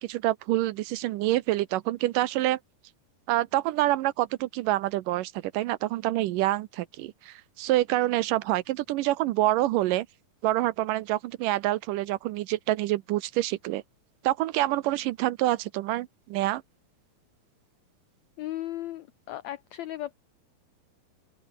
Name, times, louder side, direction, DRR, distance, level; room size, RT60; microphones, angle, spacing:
voice 1, 0.0-2.6 3.3-10.1 10.4-13.8 14.2-16.6, right 16 dB, 80° right, 2.2 m, -27 dB
voice 2, 18.4-20.1, left 14 dB, 85° left, 1.5 m, -36 dB
open air
omnidirectional pair, 4.2 m